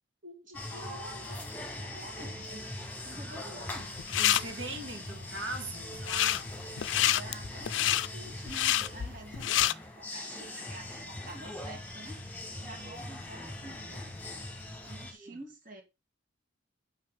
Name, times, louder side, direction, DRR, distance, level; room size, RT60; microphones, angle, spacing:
voice 1, 0.2-2.7 3.0-3.9 6.9-9.5 10.0-14.1 14.9-15.8, right 2 dB, 45° right, 1.9 m, -48 dB
sound 1, 0.5-15.1, left 1 dB, 10° left, 1.8 m, -41 dB
voice 2, 3.1-6.5 15.2-15.4, right 2 dB, 90° right, 2.7 m, -41 dB
sound 2, 3.8-4.4 5.9-6.4 6.8-9.7, left 13 dB, 65° left, 0.4 m, -27 dB
8.6 x 5.7 x 3.7 m
head